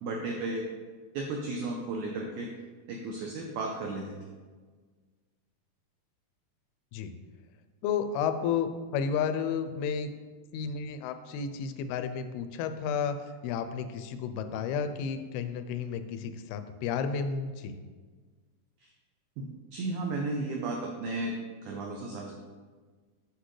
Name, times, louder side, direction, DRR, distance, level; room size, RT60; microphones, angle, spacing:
voice 1, 0.0-0.6 1.1-2.5 2.9-4.1 19.4-21.4 21.6-22.3, right 2 dB, 90° right, 1 dB, 1.7 m, -34 dB
voice 2, 7.8-10.1 10.5-13.2 13.4-17.7, left 6 dB, 85° left, 9 dB, 2.5 m, -32 dB
8.1 x 6.3 x 3.2 m, 1.5 s
omnidirectional pair, 4.4 m